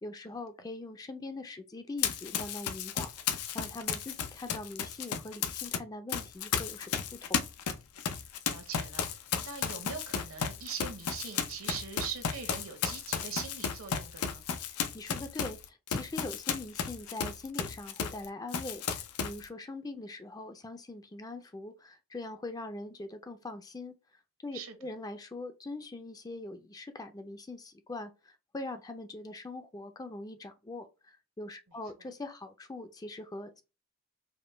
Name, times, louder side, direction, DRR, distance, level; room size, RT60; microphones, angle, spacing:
voice 1, 0.0-7.0 7.3-7.5 14.7-23.9 24.4-33.6, left 2 dB, 15° left, 0.4 m, -42 dB
Run, 2.0-5.8 6.1-18.2 18.5-19.4, left 7 dB, 90° left, 0.5 m, -34 dB
voice 2, 8.5-9.1 9.4-14.4 24.5-24.7, right 6 dB, 70° right, 1.0 m, -41 dB
5.0 x 2.2 x 3.2 m
head